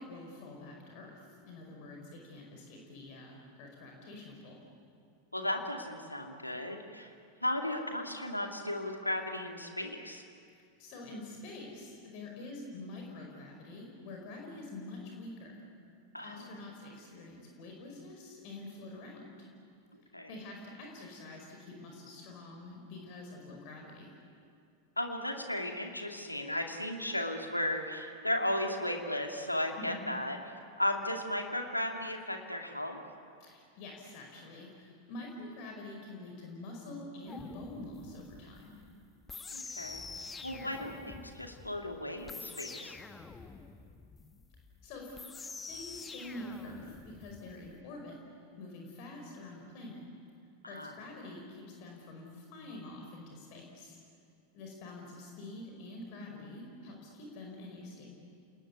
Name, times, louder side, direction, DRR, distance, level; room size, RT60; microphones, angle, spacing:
voice 1, 0.0-4.6 10.8-15.6 16.2-19.5 20.3-24.2 29.8-30.1 33.4-38.8 44.8-45.2 45.7-48.2 48.6-50.0 50.7-54.0 54.5-58.1, left 2 dB, 45° left, 1 dB, 5.2 m, -46 dB
voice 2, 5.3-7.1 7.4-10.2 16.1-16.5 20.1-20.3 25.0-30.4 30.8-33.0 39.5-40.0 40.4-43.0 50.6-50.9, left 1 dB, 85° left, 3 dB, 2.5 m, -35 dB
sound 1, 37.3-47.7, left 4 dB, 15° left, 1.5 m, -47 dB
30.0 x 20.0 x 9.6 m, 2.3 s
figure-of-eight pair, 90°, 0 cm